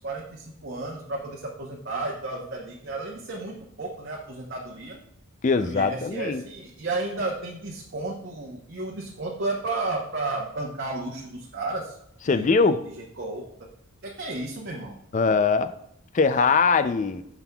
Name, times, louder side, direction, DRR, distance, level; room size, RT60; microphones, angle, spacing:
voice 1, 0.0-5.0 5.6-12.0 12.2-12.7 13.2-13.4 14.0-15.0, right 2 dB, 50° right, -2 dB, 0.9 m, -33 dB
voice 2, 5.4-6.4 12.3-12.8 15.1-15.7 16.1-17.2, left 4 dB, 35° left, 12 dB, 0.3 m, -21 dB
9.2 x 6.0 x 2.3 m, 0.76 s
head